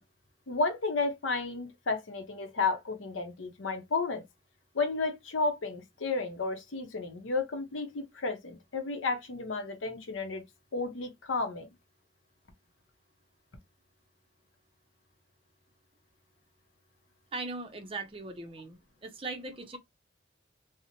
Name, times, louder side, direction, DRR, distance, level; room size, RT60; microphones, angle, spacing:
voice 1, 0.5-4.2 4.7-10.4 10.7-11.7, left 3 dB, 85° left, 0.7 m, -32 dB
voice 2, 17.3-19.8, right 3 dB, 30° right, 0.5 m, -39 dB
2.8 x 2.0 x 2.6 m
head